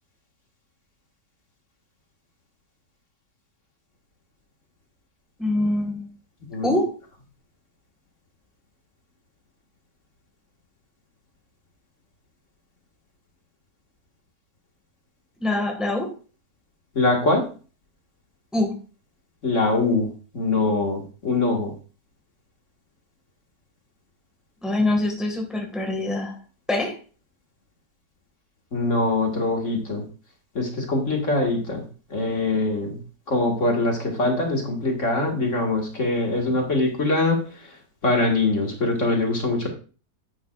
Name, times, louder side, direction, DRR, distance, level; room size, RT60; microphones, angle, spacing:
voice 1, 5.4-6.1 6.6-6.9 15.4-16.1 18.5-18.8 24.6-26.4 26.7-27.0, left 2 dB, ahead, 2 dB, 1.8 m, -24 dB
voice 2, 16.9-17.5 19.4-20.1 20.3-21.7 28.7-30.0 30.6-31.8 32.1-33.0 33.3-37.4 38.0-39.7, left 2 dB, 50° left, 1 dB, 2.2 m, -23 dB
10.0 x 9.5 x 2.5 m, 0.37 s
omnidirectional pair, 1.7 m